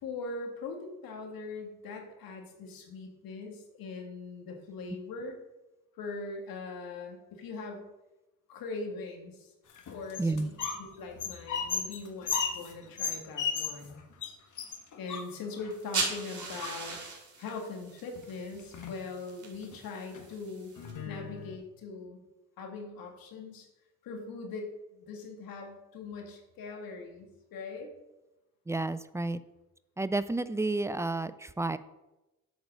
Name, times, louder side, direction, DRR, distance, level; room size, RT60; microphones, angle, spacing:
voice 1, 0.0-5.4 5.9-7.9 8.5-9.5 9.9-14.0 15.0-17.0 17.4-20.7 21.0-22.2 22.6-23.7 24.0-27.9, left 3 dB, 75° left, 2 dB, 2.1 m, -41 dB
sound 1, 9.7-10.8 11.1-13.9 14.2-14.3 14.6-15.7 16.4-17.1 18.2-18.3 18.6-19.0 19.5-19.8 20.1-20.3 20.8-21.6, left 6 dB, 55° left, 1.5 m, -35 dB
voice 2, 10.2-10.5 28.7-29.4 30.0-31.8, right 2 dB, 10° right, 14 dB, 0.3 m, -31 dB
sound 2, 15.7-20.9, right 4 dB, 55° right, 2.6 m, -39 dB
8.2 x 4.6 x 6.3 m, 1.0 s
cardioid pair, 90°, 35 cm